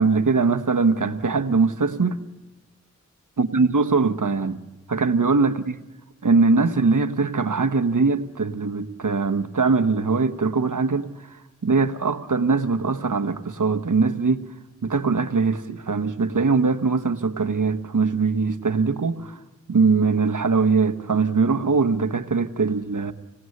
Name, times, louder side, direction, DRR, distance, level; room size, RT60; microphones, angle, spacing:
voice 1, 0.0-2.2 3.4-4.6 4.9-5.8 6.2-11.1 11.6-14.4 14.8-19.4 19.7-23.1, right 4 dB, 85° right, 1.2 m, -21 dB
26.0 x 18.0 x 9.6 m
wide cardioid pair, 45°, 31 cm